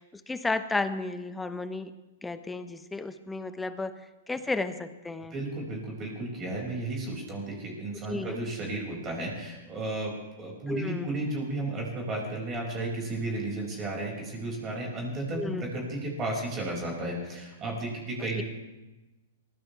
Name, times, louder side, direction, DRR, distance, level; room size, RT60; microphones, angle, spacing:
voice 1, 0.0-1.9 2.2-3.9 4.3-5.4 8.1-8.4 10.7-11.2 15.3-15.7 18.4-18.5, left 3 dB, 10° left, 11 dB, 1.0 m, -33 dB
voice 2, 5.3-18.4, right 2 dB, 25° right, -2 dB, 6.1 m, -33 dB
23.0 x 16.5 x 3.5 m, 1.1 s
hypercardioid pair, 115°, 0 cm